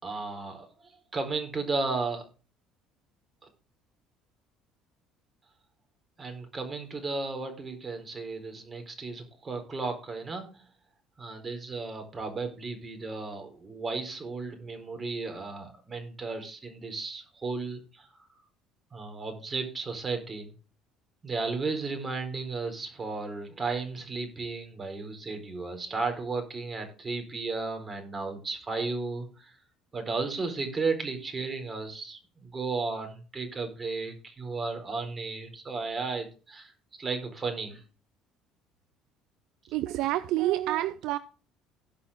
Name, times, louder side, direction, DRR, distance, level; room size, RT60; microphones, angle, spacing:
voice 1, 0.0-2.2 6.2-10.6 11.2-18.1 18.9-20.5 21.2-29.5 29.9-36.7 37.0-37.8, right 4 dB, 30° right, 4.4 m, -34 dB
voice 2, 39.7-41.2, right 15 dB, 70° right, 0.5 m, -28 dB
17.0 x 5.8 x 3.6 m
supercardioid pair, 80°, 0 cm